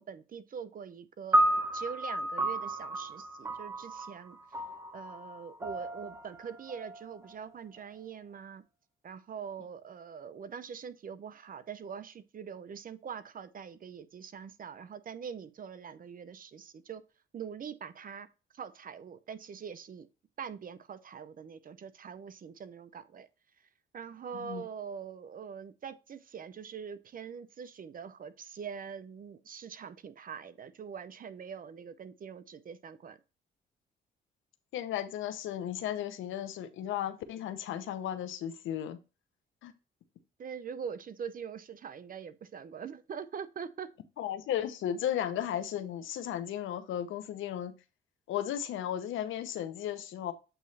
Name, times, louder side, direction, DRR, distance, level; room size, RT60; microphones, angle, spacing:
voice 1, 0.0-1.4 1.7-4.6 4.9-8.6 9.0-17.0 17.3-18.3 18.5-20.1 20.4-23.3 23.9-33.2 40.4-43.9, right 7 dB, 45° right, 0.7 m, -43 dB
sound 1, 1.3-7.8, right 1 dB, 15° right, 1.0 m, -33 dB
voice 2, 24.3-24.7 34.7-39.0 39.6-39.7 44.2-47.7 48.3-50.3, left 10 dB, 80° left, 0.8 m, -35 dB
8.1 x 3.1 x 4.1 m
cardioid pair, 90°, 20 cm